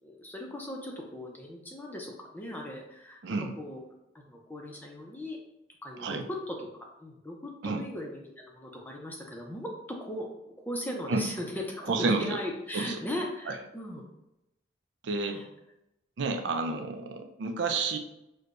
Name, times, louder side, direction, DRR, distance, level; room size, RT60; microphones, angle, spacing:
voice 1, 0.0-3.2 3.6-3.8 4.3-5.4 5.8-6.7 7.0-14.0 15.1-15.4 17.2-17.3, left 1 dB, 10° left, 0 dB, 0.5 m, -38 dB
voice 2, 3.2-3.5 6.0-6.2 7.6-7.8 11.1-11.2 11.9-12.4 12.7-13.0 13.5-13.6 15.0-15.4 16.2-18.0, right 3 dB, 75° right, 5 dB, 0.4 m, -30 dB
6.3 x 2.2 x 2.5 m, 0.88 s
head